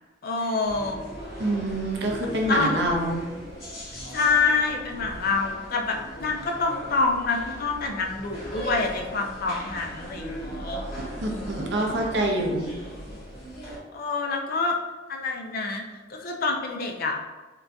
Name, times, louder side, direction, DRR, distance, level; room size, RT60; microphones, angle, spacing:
voice 1, 0.2-1.0 2.5-2.8 4.1-10.8 11.2-12.0 13.9-14.8 15.1-15.8 16.1-17.2, left 4 dB, 50° left, 1 dB, 0.4 m, -27 dB
sound 1, 0.6-13.8, equal, 30° left, 1.4 m, -38 dB
voice 2, 1.4-3.2 11.0-12.7, right 1 dB, 60° right, 1 dB, 0.6 m, -26 dB
3.7 x 2.5 x 2.2 m, 1.2 s
head